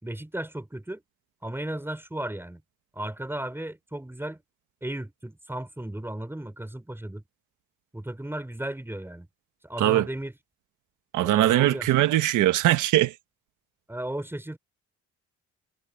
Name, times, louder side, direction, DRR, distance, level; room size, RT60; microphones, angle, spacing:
voice 1, 0.0-1.0 1.4-2.6 2.9-4.4 4.8-7.2 7.9-9.3 9.6-10.3 11.2-11.9 13.9-14.6, right 1 dB, 5° right, 5.2 m, -35 dB
voice 2, 11.1-13.1, right 14 dB, 85° right, 1.4 m, -21 dB
cardioid pair, 90°, 30 cm